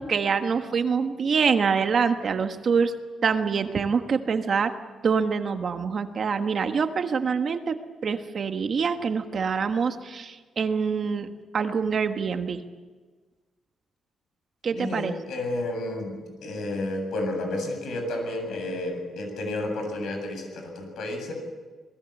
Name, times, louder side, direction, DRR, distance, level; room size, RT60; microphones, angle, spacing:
voice 1, 0.0-2.9 3.2-4.7 5.0-12.6 14.6-15.1, right 5 dB, 40° right, 7 dB, 1.4 m, -25 dB
voice 2, 14.7-21.3, left 1 dB, 75° left, 4 dB, 7.6 m, -31 dB
27.5 x 20.5 x 8.3 m, 1.4 s
wide cardioid pair, 170°, 0 cm